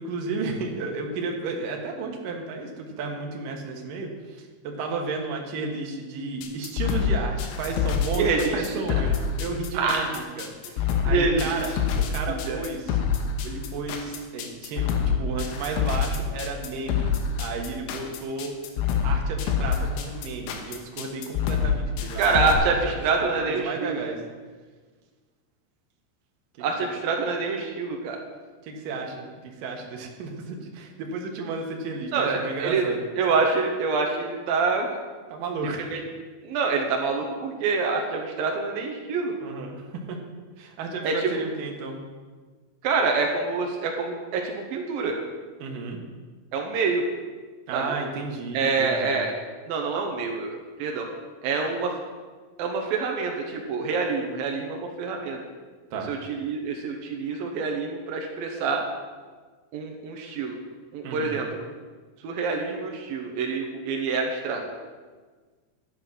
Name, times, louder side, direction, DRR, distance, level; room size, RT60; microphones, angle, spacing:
voice 1, 0.0-13.0 13.4-17.1 17.4-18.5 19.0-22.8 23.2-24.2 28.6-33.0 35.3-35.9 39.4-40.2 40.6-42.0 45.6-46.0 47.7-49.2 55.9-56.1 61.0-61.4, right 3 dB, 65° right, 1 dB, 2.2 m, -33 dB
sound 1, 6.4-22.5, left 8 dB, 80° left, 3.6 m, -26 dB
voice 2, 8.1-8.7 9.7-10.1 11.0-11.7 12.3-12.6 22.2-24.0 26.6-28.2 32.1-32.9 33.2-35.0 35.8-36.0 36.4-39.4 41.0-41.3 42.8-45.2 46.5-47.0 47.7-47.9 48.5-49.3 49.7-51.1 51.4-52.0 52.6-55.4 56.0-58.8 59.7-60.6 60.9-61.5 62.2-64.6, right 4 dB, 85° right, 2 dB, 2.1 m, -26 dB
11.5 x 9.8 x 6.0 m, 1.4 s
omnidirectional pair, 5.7 m